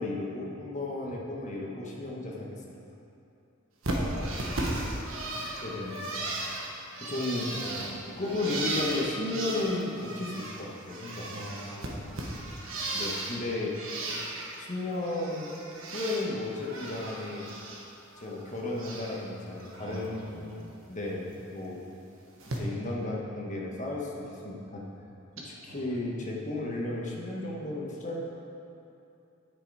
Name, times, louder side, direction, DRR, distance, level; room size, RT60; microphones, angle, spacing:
voice 1, 0.0-2.5 5.6-6.0 7.0-7.5 8.2-11.3 12.9-13.8 14.6-15.5 15.9-17.5 18.2-20.2 20.9-21.8 22.6-24.9 25.6-28.2, left 2 dB, 40° left, -2 dB, 1.4 m, -34 dB
Bird, 3.8-10.6 10.9-13.4 13.7-14.6 14.9-16.3 16.6-17.8 18.1-19.2 19.6-20.0 21.3-21.4 22.4-22.6, right 2 dB, 90° right, 1.2 m, -36 dB
voice 2, 3.9-4.7 7.3-8.2 11.3-12.3 18.5-18.6 19.8-20.7 25.7-25.8, equal, 70° right, -5 dB, 2.1 m, -43 dB
10.5 x 6.4 x 4.9 m, 2.7 s
head